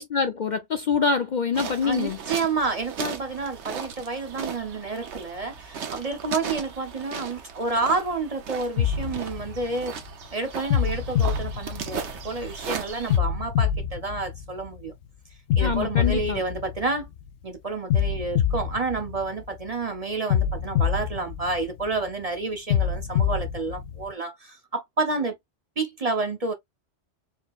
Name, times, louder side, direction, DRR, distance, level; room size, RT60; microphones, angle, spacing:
voice 1, 0.0-2.2 15.6-16.4, left 5 dB, 55° left, 0.5 m, -25 dB
sound 1, 1.5-13.2, right 6 dB, 75° right, 1.2 m, -37 dB
voice 2, 1.8-10.0 10.3-14.9 15.6-17.1 17.4-25.3 25.8-26.5, right 3 dB, 40° right, 0.7 m, -29 dB
sound 2, 8.8-10.1 10.7-12.4 13.1-14.9 15.5-17.3 17.9-19.7 20.3-22.0 22.7-24.1, left 8 dB, 80° left, 0.9 m, -26 dB
4.6 x 2.8 x 2.4 m
omnidirectional pair, 1.2 m